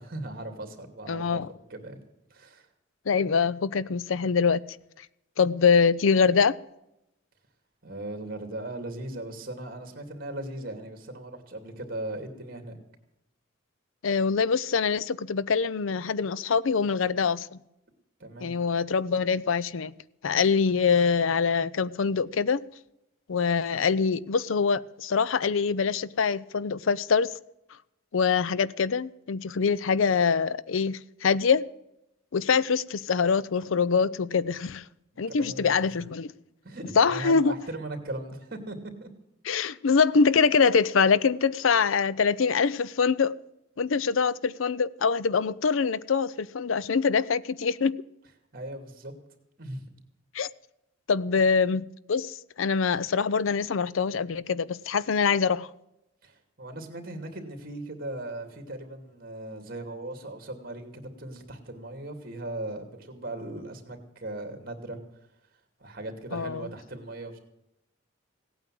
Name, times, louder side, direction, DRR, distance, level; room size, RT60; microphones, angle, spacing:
voice 1, 0.0-1.4 1.7-2.0 2.3-2.7 7.8-12.8 18.2-18.5 35.3-36.0 36.6-38.8 39.0-39.1 48.5-49.1 49.6-49.8 56.2-65.0 65.8-67.4, right 1 dB, 45° right, 2.6 m, -38 dB
voice 2, 1.1-1.5 3.1-4.6 5.4-6.6 14.0-17.6 18.4-19.9 20.2-22.7 23.3-27.3 28.1-31.6 32.3-34.8 35.2-36.3 37.0-37.5 39.5-43.3 43.8-48.0 50.3-50.5 51.1-55.7 66.3-66.7, left 5 dB, 85° left, 0.5 m, -24 dB
17.0 x 9.0 x 7.6 m
head